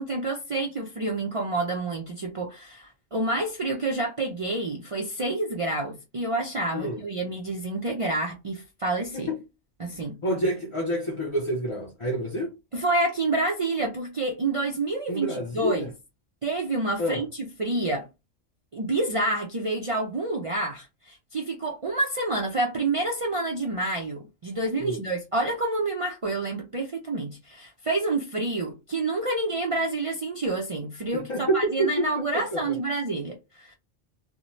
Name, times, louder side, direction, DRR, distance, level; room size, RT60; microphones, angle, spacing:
voice 1, 0.0-9.3 9.8-10.2 12.7-15.9 16.4-18.1 18.7-33.7, right 2 dB, 60° right, 0.3 m, -28 dB
voice 2, 10.2-12.5 15.1-15.9 17.0-17.2 24.8-25.0 31.1-32.8, right 1 dB, 40° left, 0.5 m, -28 dB
2.6 x 2.1 x 3.0 m
omnidirectional pair, 1.3 m